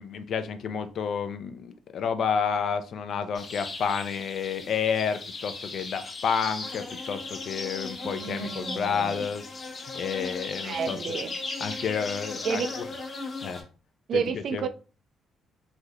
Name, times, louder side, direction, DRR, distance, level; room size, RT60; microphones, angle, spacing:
voice 1, 0.0-9.4 9.8-11.2 11.6-12.6 13.4-13.6 14.1-14.7, left 6 dB, 65° left, 0.4 m, -30 dB
sound 1, 3.3-13.6, left 3 dB, 45° left, 1.0 m, -37 dB
voice 2, 8.0-9.2 10.6-11.3 12.4-12.8 14.1-14.7, right 6 dB, 65° right, 0.3 m, -31 dB
3.2 x 2.7 x 2.4 m
cardioid pair, 90°, 0 cm